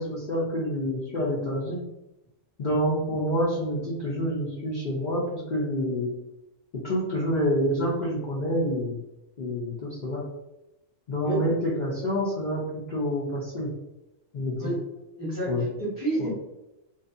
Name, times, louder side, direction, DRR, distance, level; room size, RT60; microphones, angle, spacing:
voice 1, 0.0-1.8 2.6-6.1 6.8-9.0 9.4-10.2 11.1-13.7 14.3-14.7 15.5-15.7 16.2-16.3, equal, 50° left, -6 dB, 0.6 m, -27 dB
voice 2, 15.2-16.3, right 1 dB, 20° right, -8 dB, 0.9 m, -29 dB
2.6 x 2.3 x 2.5 m, 0.92 s
omnidirectional pair, 1.3 m